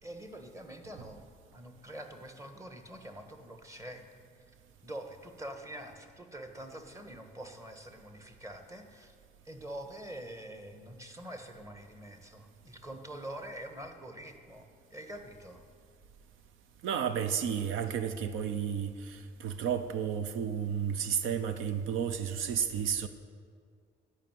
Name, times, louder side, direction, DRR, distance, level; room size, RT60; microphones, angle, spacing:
voice 1, 0.0-1.2 1.5-4.0 4.8-9.1 9.4-15.7, right 1 dB, 15° right, 1.5 m, -45 dB
voice 2, 16.8-23.1, right 8 dB, 85° right, 0.7 m, -32 dB
12.5 x 5.8 x 9.2 m
cardioid pair, 90°, 20 cm